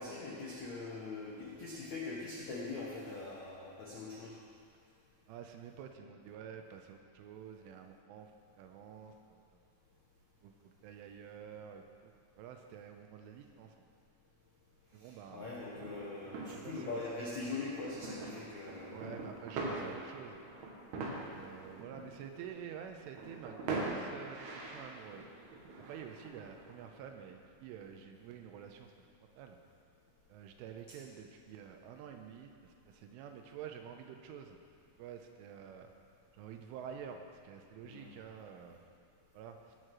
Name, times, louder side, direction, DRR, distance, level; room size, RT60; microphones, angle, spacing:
voice 1, 0.0-4.4 15.0-19.2 19.6-19.9 21.2-21.4 37.8-38.1, left 3 dB, 80° left, -5 dB, 1.6 m, -42 dB
voice 2, 5.3-8.3 8.6-9.6 10.4-13.7 14.9-15.5 16.5-17.1 18.9-20.4 21.2-25.3 25.9-28.9 29.3-29.6 30.3-34.6 35.0-35.9 36.3-38.8 39.3-39.6, right 8 dB, 85° right, 5 dB, 3.2 m, -49 dB
sound 1, 15.7-26.9, right 3 dB, 60° right, 3.2 m, -44 dB
18.5 x 6.6 x 6.2 m, 2.5 s
omnidirectional pair, 5.9 m